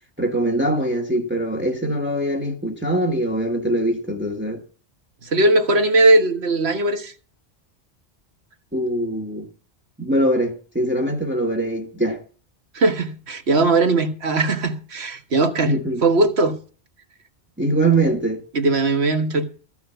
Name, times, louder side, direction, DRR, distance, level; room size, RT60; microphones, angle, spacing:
voice 1, 0.2-4.6 8.7-9.5 10.0-12.2 15.6-16.0 17.6-18.4, right 1 dB, 10° right, 1.3 m, -22 dB
voice 2, 5.2-7.1 12.7-15.7 16.0-16.6 18.5-19.4, right 2 dB, 75° right, 1.7 m, -19 dB
14.5 x 5.9 x 8.0 m
omnidirectional pair, 1.1 m